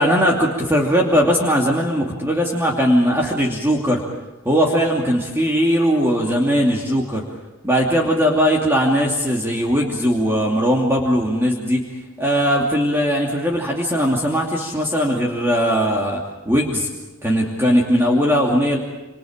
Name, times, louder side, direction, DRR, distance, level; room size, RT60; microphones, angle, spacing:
voice 1, 0.0-4.0 4.4-7.2 7.6-11.9 12.2-16.9 17.2-18.8, equal, 10° right, -2 dB, 2.7 m, -19 dB
28.0 x 27.0 x 5.1 m, 1.1 s
head